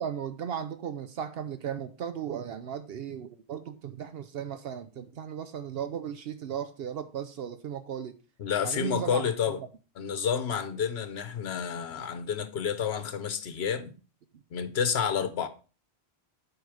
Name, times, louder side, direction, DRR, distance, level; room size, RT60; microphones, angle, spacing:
voice 1, 0.0-8.2 8.6-9.2 14.3-14.4, right 8 dB, 70° right, 0.8 m, -36 dB
voice 2, 8.4-9.6 10.0-13.9 14.5-15.5, left 7 dB, 75° left, 1.1 m, -30 dB
8.2 x 4.8 x 4.8 m
omnidirectional pair, 1.1 m